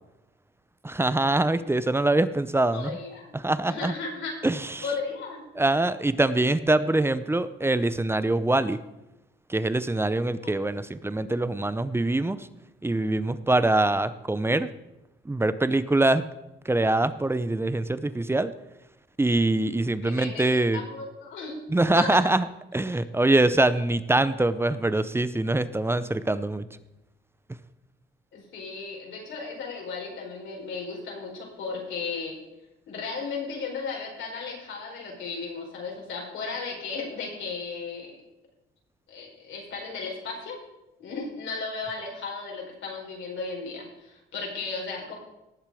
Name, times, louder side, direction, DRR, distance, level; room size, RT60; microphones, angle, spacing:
voice 1, 0.8-3.0 3.3-3.9 4.4-4.8 5.6-8.8 9.5-12.5 12.8-14.7 15.3-16.2 16.6-18.5 19.2-20.8 21.7-22.5 22.7-26.6, right 2 dB, 10° right, 14 dB, 0.7 m, -24 dB
voice 2, 2.7-3.3 3.7-4.3 4.8-5.4 10.4-10.5 20.0-21.6 22.0-22.2 28.3-32.4 32.9-38.1 39.1-40.6 41.0-45.1, left 4 dB, 75° left, -1 dB, 4.9 m, -35 dB
18.5 x 7.2 x 5.0 m, 0.93 s
cardioid pair, 90°, 20 cm